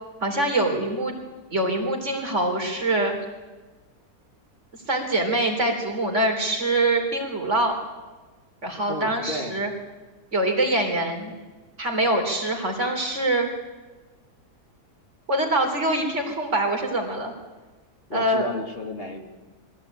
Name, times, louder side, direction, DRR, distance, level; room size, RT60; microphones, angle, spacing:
voice 1, 0.2-1.1 1.5-3.2 4.9-7.7 8.6-9.7 10.3-11.3 11.8-13.5 15.3-17.3 18.1-18.5, right 1 dB, 45° right, 3 dB, 3.9 m, -24 dB
voice 2, 8.9-9.5 18.1-19.2, left 2 dB, 35° left, 3 dB, 2.4 m, -32 dB
22.5 x 16.0 x 9.0 m, 1.2 s
omnidirectional pair, 1.7 m